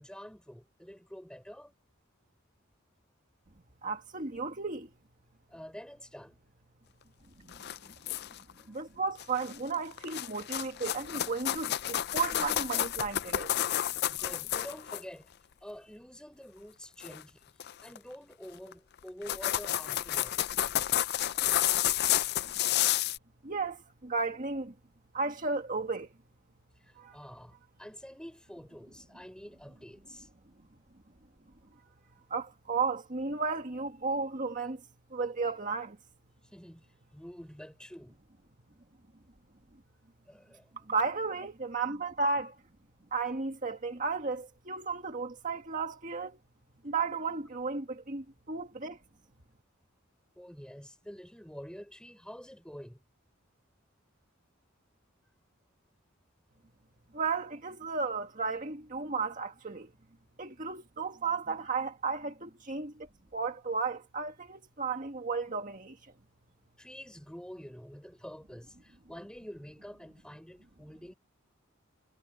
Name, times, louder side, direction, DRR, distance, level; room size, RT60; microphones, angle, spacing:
voice 1, 0.0-1.7 5.5-6.4 14.1-15.3 15.6-17.5 17.8-20.3 26.8-30.3 36.5-36.8 37.1-38.2 40.3-40.7 47.3-47.6 50.3-53.0 61.4-61.7 66.8-71.1, equal, 5° left, 5.1 m, -47 dB
voice 2, 3.8-4.9 7.4-7.5 8.7-13.5 23.4-24.7 25.1-26.1 27.0-27.2 32.3-34.8 35.1-36.0 40.9-42.6 43.1-46.4 46.8-49.0 57.1-59.9 60.4-62.9 63.3-66.0, right 4 dB, 40° right, 1.7 m, -34 dB
sound 1, 7.5-8.5 9.2-9.6 9.9-15.0 17.0-17.2 17.6-18.0 18.7-18.8 19.1-23.2, left 12 dB, 50° left, 0.4 m, -30 dB
head